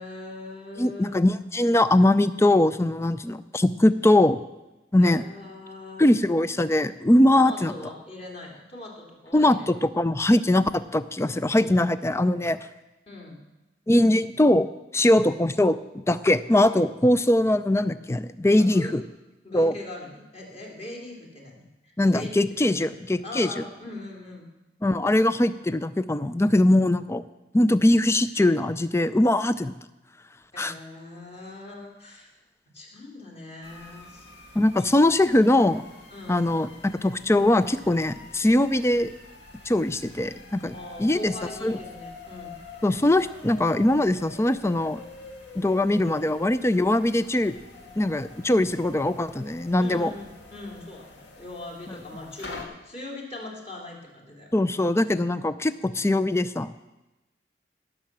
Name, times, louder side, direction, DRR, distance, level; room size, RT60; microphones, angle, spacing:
voice 1, 0.0-1.2 5.0-6.0 7.3-9.7 13.1-13.4 15.0-15.3 18.6-19.0 19.4-22.3 22.7-23.0 23.2-24.4 30.5-32.3 32.7-34.3 36.1-36.5 40.7-42.6 49.8-54.5, left 2 dB, 35° left, 0 dB, 3.0 m, -41 dB
voice 2, 0.8-4.4 4.9-5.2 6.0-7.7 9.3-12.6 13.9-14.7 14.9-19.0 19.5-19.7 22.0-23.6 24.8-27.2 27.5-29.7 30.6-30.7 34.6-35.8 36.3-39.1 39.7-40.7 41.0-41.3 41.6-41.8 42.8-45.0 45.6-47.5 48.0-50.1 54.5-56.8, left 1 dB, 15° left, 14 dB, 0.5 m, -21 dB
sound 1, 33.6-52.6, left 3 dB, 80° left, 1.9 m, -46 dB
17.5 x 6.7 x 7.4 m, 1.0 s
head